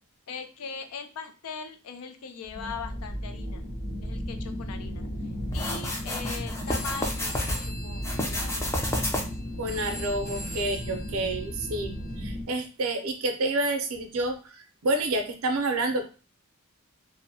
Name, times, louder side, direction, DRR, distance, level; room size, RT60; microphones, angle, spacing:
voice 1, 0.3-3.6 4.0-5.1 5.5-9.7 10.9-11.1, left 5 dB, 80° left, 7 dB, 0.4 m, -40 dB
sound 1, 2.4-12.4, equal, 60° left, 1.0 m, -35 dB
Touchpad sliding, 5.5-7.6 8.0-9.5, left 1 dB, 10° left, 0.3 m, -30 dB
Telephone, 6.7-12.2, left 1 dB, 30° left, 0.7 m, -44 dB
voice 2, 9.6-14.4 14.8-16.0, right 2 dB, 70° right, 5 dB, 0.5 m, -28 dB
2.6 x 2.1 x 2.6 m, 0.35 s
head